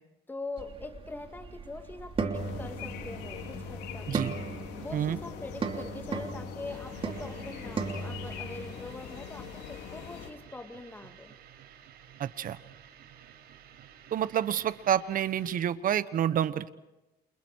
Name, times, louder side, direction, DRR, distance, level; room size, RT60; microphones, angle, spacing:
voice 1, 0.3-4.1 4.8-11.3, left 3 dB, 10° left, 6 dB, 2.0 m, -43 dB
sound 1, 0.6-8.7, right 4 dB, 35° right, 3.2 m, -37 dB
sound 2, 2.3-10.3, left 8 dB, 85° left, 3.4 m, -43 dB
sound 3, 6.7-15.6, right 9 dB, 70° right, 5.0 m, -53 dB
voice 2, 12.2-12.6 14.1-16.7, right 9 dB, 55° right, 14 dB, 1.3 m, -28 dB
29.5 x 28.0 x 4.7 m, 1.0 s
cardioid pair, 110°, 17 cm